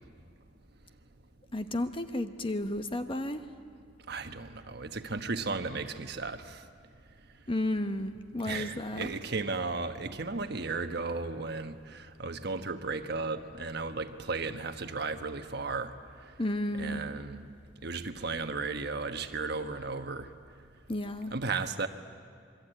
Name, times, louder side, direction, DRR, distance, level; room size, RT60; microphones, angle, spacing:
voice 1, 1.5-3.4 7.5-9.1 16.4-17.0 20.9-21.3, left 1 dB, 30° left, 8 dB, 1.1 m, -32 dB
voice 2, 4.1-6.6 8.4-15.9 16.8-17.4 17.8-20.3 21.3-21.9, right 3 dB, 60° right, 7 dB, 1.3 m, -35 dB
27.0 x 22.5 x 9.0 m, 2.2 s
head